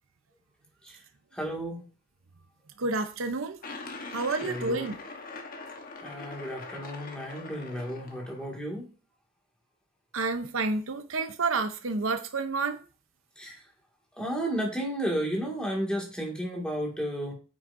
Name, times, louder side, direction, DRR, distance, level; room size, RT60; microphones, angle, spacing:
voice 1, 1.3-1.8 4.4-4.9 6.0-8.9 13.4-13.6 14.2-17.3, equal, 5° left, 2.1 m, -33 dB
voice 2, 2.8-3.6 4.1-5.0 10.1-12.8, right 3 dB, 70° right, 0.8 m, -29 dB
Marble Rolling on Wood A, 3.6-8.6, left 3 dB, 45° left, 1.2 m, -42 dB
8.8 x 6.1 x 2.7 m
head